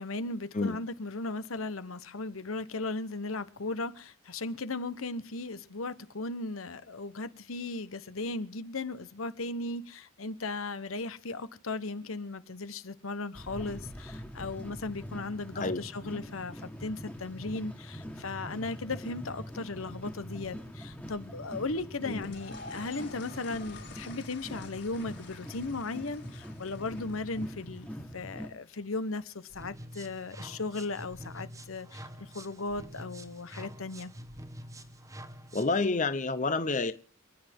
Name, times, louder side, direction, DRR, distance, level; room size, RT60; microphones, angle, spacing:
voice 1, 0.0-34.1, left 3 dB, 80° left, 1.1 m, -37 dB
sound 1, 13.3-28.5, equal, 5° left, 1.8 m, -43 dB
sound 2, 22.1-28.1, left 4 dB, 60° left, 5.1 m, -50 dB
sound 3, 29.5-35.9, right 1 dB, 15° right, 1.1 m, -46 dB
voice 2, 35.5-36.9, left 3 dB, 35° left, 0.8 m, -29 dB
29.0 x 10.0 x 3.6 m
head